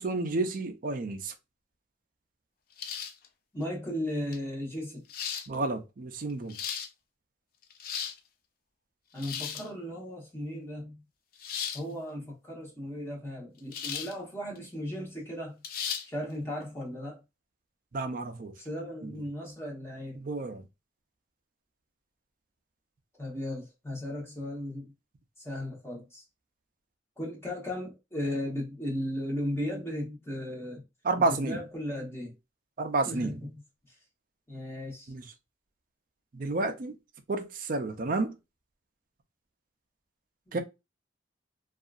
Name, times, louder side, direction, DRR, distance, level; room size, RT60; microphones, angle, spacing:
voice 1, 0.0-1.3 5.5-6.6 17.9-18.5 19.0-19.1 20.1-20.6 31.0-31.6 32.8-33.4 35.1-35.3 36.3-37.0 37.3-38.4 40.5-40.6, right 3 dB, 50° right, 0.5 m, -30 dB
sound 1, 2.8-3.3 4.3-4.4 5.1-5.5 6.3-6.9 7.6-8.2 9.2-9.7 11.4-11.8 13.7-14.1 14.5-14.6 15.6-16.1, left 7 dB, 55° left, 0.4 m, -35 dB
voice 2, 3.5-5.0 9.1-11.0 11.7-15.6 16.0-17.2 18.6-20.2 23.2-24.9 25.4-26.2 27.2-30.8 31.3-32.3 33.1-33.5 34.5-35.1 40.5-40.6, left 1 dB, 15° left, 1.0 m, -36 dB
2.7 x 2.4 x 2.4 m
head